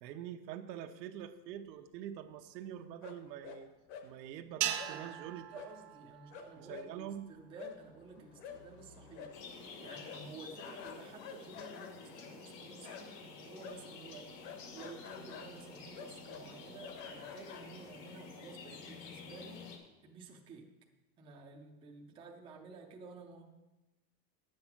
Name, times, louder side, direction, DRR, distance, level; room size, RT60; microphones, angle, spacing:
voice 1, 0.0-3.7 4.0-5.4 6.6-7.3, right 10 dB, 85° right, 7 dB, 1.1 m, -45 dB
sound 1, 3.0-3.6 3.9-4.1 4.8-4.9 5.5-5.7 6.0-6.1 6.3-13.3 13.6-18.1, left 7 dB, 50° left, 1.2 m, -50 dB
voice 2, 4.6-19.8 20.0-20.7 21.2-23.4, right 4 dB, 10° right, 0 dB, 0.5 m, -52 dB
sound 2, 4.6-7.0, right 12 dB, 55° right, 0.9 m, -39 dB
sound 3, 9.3-19.8, left 4 dB, 80° left, 2.4 m, -50 dB
9.8 x 7.8 x 5.9 m, 1.1 s
supercardioid pair, 170°, 49 cm